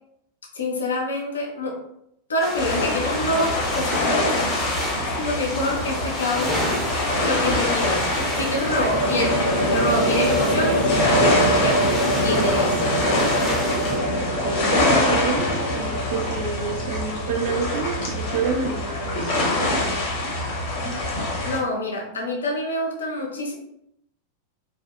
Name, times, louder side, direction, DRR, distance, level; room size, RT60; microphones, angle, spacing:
voice 1, 0.5-1.8 2.3-4.5 5.0-6.7 7.2-10.8 11.5-12.8 21.4-23.5, left 1 dB, 70° left, -1 dB, 0.5 m, -26 dB
sound 1, 2.4-14.0, left 1 dB, 10° left, 0.7 m, -31 dB
sound 2, 2.6-21.6, left 2 dB, 45° left, 0.9 m, -25 dB
sound 3, 5.0-5.6 8.1-19.5, right 1 dB, 85° right, 0.8 m, -26 dB
voice 2, 14.1-20.1, right 4 dB, 50° right, 1 dB, 0.5 m, -29 dB
2.6 x 2.1 x 2.2 m, 0.76 s
figure-of-eight pair, 90°, 0 cm